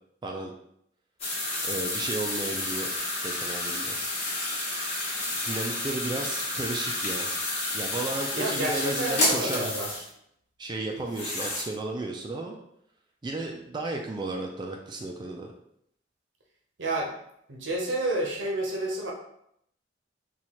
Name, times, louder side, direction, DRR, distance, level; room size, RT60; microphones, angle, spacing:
sound 1, 1.2-10.1 11.0-11.6, left 2 dB, 35° left, 1.0 m, -30 dB
voice 1, 1.6-2.9 3.2-4.0 5.4-7.3 7.7-9.9 10.6-12.6 13.2-15.5, right 2 dB, 25° right, 1 dB, 0.3 m, -33 dB
voice 2, 8.3-9.9 16.8-17.1 17.5-19.1, right 1 dB, 80° right, 0 dB, 0.8 m, -30 dB
4.2 x 2.3 x 2.9 m, 0.73 s
head